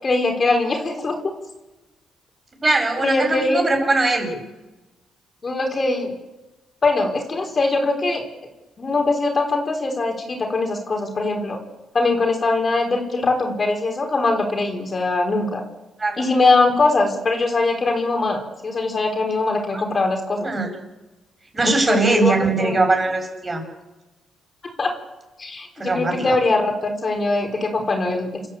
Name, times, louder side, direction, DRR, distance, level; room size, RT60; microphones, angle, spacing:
voice 1, 0.0-1.1 3.0-3.6 5.4-6.1 6.8-8.2 8.8-11.6 11.9-15.6 16.2-20.5 21.6-22.3 22.6-22.7 24.8-24.9 25.4-28.3, left 3 dB, 35° left, 3 dB, 4.7 m, -21 dB
voice 2, 2.6-4.3 16.0-16.2 19.7-19.8 20.4-20.7 21.5-23.6 25.8-26.4, right 2 dB, 25° right, 3 dB, 7.9 m, -20 dB
28.5 x 13.0 x 8.7 m, 1.1 s
cardioid pair, 90°, 0 cm